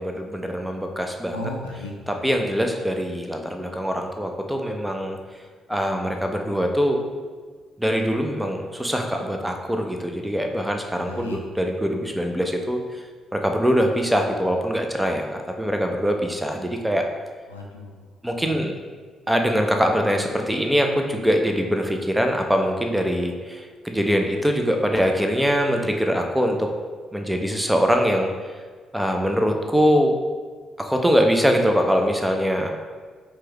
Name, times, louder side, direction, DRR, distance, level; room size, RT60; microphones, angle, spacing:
voice 1, 0.0-1.5 2.1-5.2 5.7-7.1 7.8-12.8 13.3-17.0 18.2-18.8 19.3-26.7 27.1-28.3 28.9-30.2 30.8-32.7, equal, 5° right, 3 dB, 0.5 m, -23 dB
voice 2, 1.3-2.3 11.1-11.4 17.5-18.0 18.4-18.7, left 1 dB, 90° left, -1 dB, 0.3 m, -35 dB
4.5 x 2.3 x 3.0 m, 1.5 s
figure-of-eight pair, 40°, 0 cm